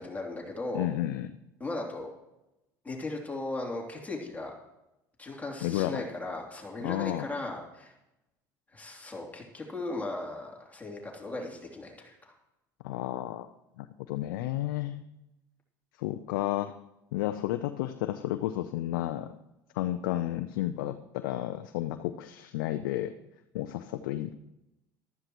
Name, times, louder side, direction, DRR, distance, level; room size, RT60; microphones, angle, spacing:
voice 1, 0.0-0.9 1.6-2.1 2.8-4.5 5.2-7.9 8.7-12.3, left 2 dB, 15° left, -1 dB, 3.1 m, -37 dB
voice 2, 0.7-1.3 5.6-6.0 6.8-7.3 12.8-13.5 13.8-15.0 16.0-16.7 17.1-19.3 19.7-23.1 23.5-24.3, left 14 dB, 80° left, 8 dB, 0.6 m, -32 dB
14.5 x 13.0 x 3.1 m, 0.92 s
hypercardioid pair, 75°, 11 cm